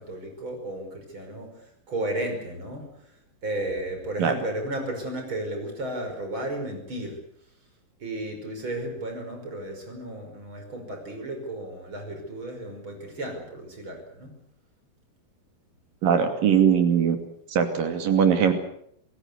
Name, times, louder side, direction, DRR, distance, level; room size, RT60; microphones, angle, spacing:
voice 1, 0.0-3.2 3.4-7.2 8.0-14.3, right 1 dB, 35° right, 4 dB, 6.2 m, -34 dB
voice 2, 16.0-17.2 17.5-18.5, right 7 dB, 80° right, 7 dB, 4.3 m, -21 dB
27.5 x 17.0 x 8.3 m, 0.68 s
omnidirectional pair, 3.9 m